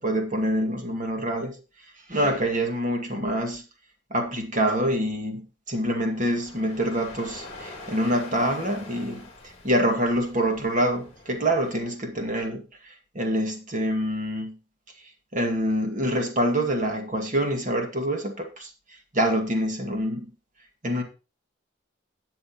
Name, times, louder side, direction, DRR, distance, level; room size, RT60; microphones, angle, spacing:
voice 1, 0.0-1.6 2.1-3.6 4.1-9.3 9.6-14.6 15.3-20.3 20.8-21.0, right 1 dB, 40° right, 2.1 m, -26 dB
sound 1, 6.1-11.8, left 2 dB, 30° left, 3.1 m, -44 dB
18.0 x 6.2 x 3.0 m
head